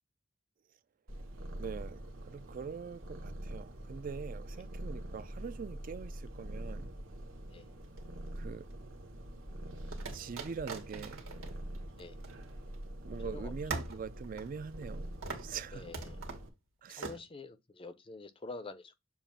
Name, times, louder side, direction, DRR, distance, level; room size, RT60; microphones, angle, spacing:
Purr, 1.1-16.5, right 1 dB, 70° right, 1.3 m, -45 dB
voice 1, 1.6-6.9 8.3-8.7 10.1-11.2 13.0-15.1 15.4-15.8 16.8-17.1, right 6 dB, 40° right, 0.4 m, -43 dB
sound 1, 7.8-8.7 9.9-12.9 13.2-13.3 13.7-15.0 15.2-15.6 15.9-16.5 17.0-17.2, right 3 dB, 90° right, 1.8 m, -42 dB
voice 2, 15.7-16.2 16.9-18.9, left 3 dB, 25° left, 0.5 m, -47 dB
7.0 x 2.5 x 5.6 m
head